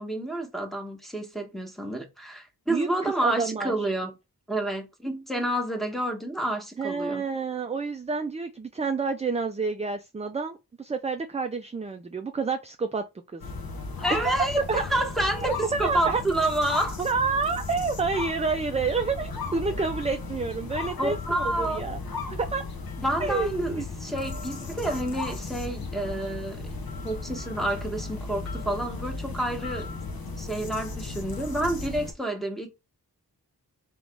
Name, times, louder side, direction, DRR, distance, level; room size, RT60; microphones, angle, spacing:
voice 1, 0.0-4.1 4.5-7.2 14.0-17.0 21.0-21.8 23.0-26.7 27.0-30.0 30.4-32.7, right 1 dB, ahead, 1.0 m, -29 dB
voice 2, 2.7-3.9 6.8-13.4 14.1-14.8 15.4-16.2 17.0-22.0 22.3-22.6 23.2-23.9, right 4 dB, 20° right, 0.3 m, -29 dB
sound 1, 13.4-32.1, left 3 dB, 70° left, 0.9 m, -35 dB
3.9 x 3.0 x 3.4 m
wide cardioid pair, 85°, 38 cm